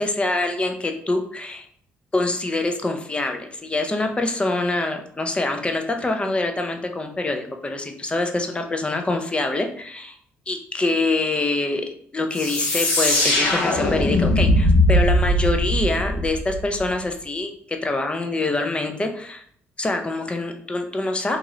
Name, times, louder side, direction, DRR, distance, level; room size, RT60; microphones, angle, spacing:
voice 1, 0.0-1.7 2.1-10.1 10.5-11.8 12.1-19.4 19.8-21.4, left 2 dB, 20° left, 5 dB, 0.5 m, -25 dB
sound 1, 12.3-16.9, left 1 dB, 85° left, 0.9 m, -20 dB
2.7 x 2.5 x 3.0 m, 0.62 s
supercardioid pair, 70°, 5 cm